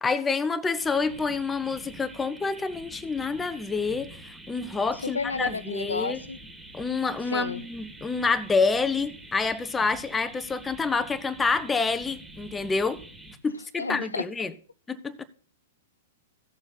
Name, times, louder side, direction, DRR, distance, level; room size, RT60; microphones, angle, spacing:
voice 1, 0.0-6.2 6.7-13.0 13.4-14.5 14.9-15.3, left 4 dB, 10° left, 0.9 m, -28 dB
sound 1, 0.7-13.4, right 1 dB, 10° right, 2.3 m, -46 dB
voice 2, 5.0-6.4 7.3-7.6 13.8-14.2, left 4 dB, 80° left, 0.5 m, -31 dB
15.0 x 7.0 x 4.1 m
figure-of-eight pair, 105°, 0 cm